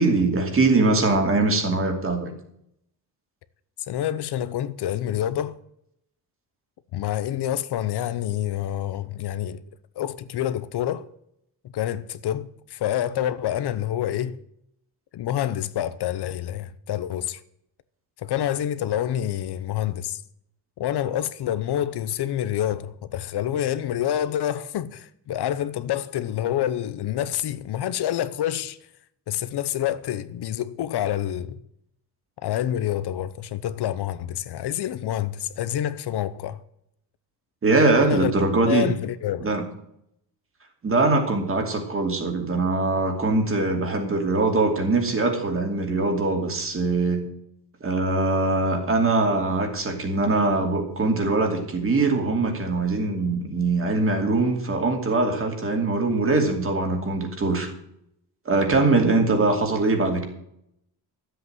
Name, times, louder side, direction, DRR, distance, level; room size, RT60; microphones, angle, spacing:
voice 1, 0.0-2.3 37.6-38.9 39.4-39.6 40.8-47.3 47.8-57.7 58.5-60.3, right 3 dB, 30° right, 2.6 m, -22 dB
voice 2, 3.9-5.6 6.9-9.6 10.0-11.1 11.6-14.4 15.1-17.4 18.2-20.2 20.8-28.8 29.3-31.6 32.4-36.6 38.0-38.3 38.7-39.6, left 11 dB, 70° left, 0.8 m, -27 dB
12.5 x 8.0 x 7.9 m
wide cardioid pair, 175°, 41 cm